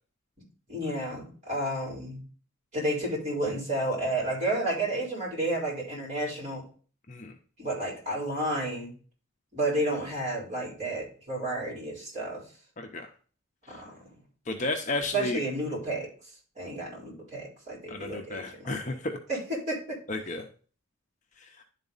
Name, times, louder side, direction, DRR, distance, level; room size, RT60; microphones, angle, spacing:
voice 1, 0.7-2.2 2.7-6.6 7.6-8.9 9.5-12.4 13.7-13.9 15.1-16.1 16.6-18.7 19.3-19.4 19.7-20.0, right 1 dB, 35° right, -5 dB, 4.6 m, -31 dB
voice 2, 12.8-13.1 13.7-13.8 14.5-15.4 17.9-19.2 20.1-20.4 21.4-21.5, left 2 dB, 35° left, 4 dB, 0.7 m, -33 dB
11.0 x 4.1 x 4.0 m, 0.41 s
head